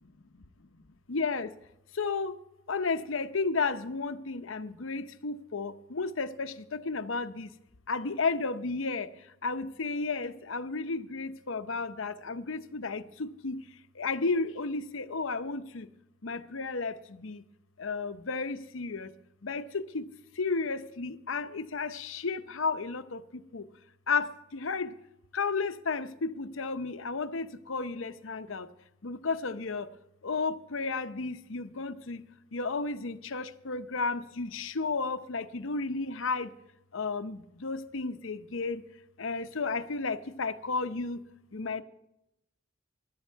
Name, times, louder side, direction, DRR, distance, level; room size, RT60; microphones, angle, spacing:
voice 1, 1.1-1.5 1.9-2.4 2.7-7.5 7.9-9.1 9.4-13.6 13.9-15.9 16.2-17.4 17.8-19.1 19.4-20.1 20.4-23.7 24.1-24.9 25.3-28.7 29.0-29.9 30.2-32.2 32.5-36.5 36.9-38.8 39.2-41.2 41.5-41.8, left 4 dB, 70° left, 0.8 m, -33 dB
16.5 x 11.5 x 4.6 m
head